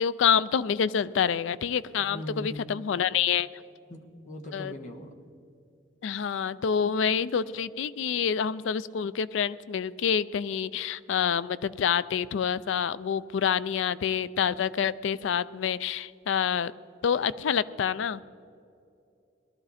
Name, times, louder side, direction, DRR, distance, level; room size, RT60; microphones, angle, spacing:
voice 1, 0.0-3.5 4.5-4.7 6.0-16.7 17.0-18.2, left 7 dB, 75° left, 17 dB, 0.4 m, -27 dB
voice 2, 1.9-2.6 3.9-5.1, equal, 40° left, 3 dB, 1.3 m, -40 dB
19.0 x 12.5 x 4.2 m, 2.6 s
head